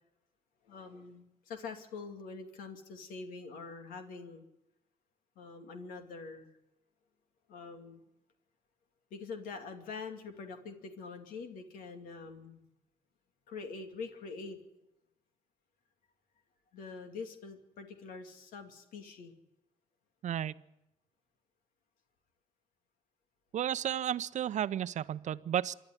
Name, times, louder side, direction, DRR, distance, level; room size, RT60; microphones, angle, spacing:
voice 1, 0.6-4.4 5.4-6.5 7.5-8.0 9.1-12.6 13.5-14.6 16.7-19.3, left 4 dB, 80° left, 5 dB, 2.5 m, -45 dB
voice 2, 20.2-20.5 23.5-25.7, right 10 dB, 60° right, 16 dB, 0.7 m, -33 dB
26.5 x 10.5 x 9.8 m, 0.90 s
supercardioid pair, 70°, 14 cm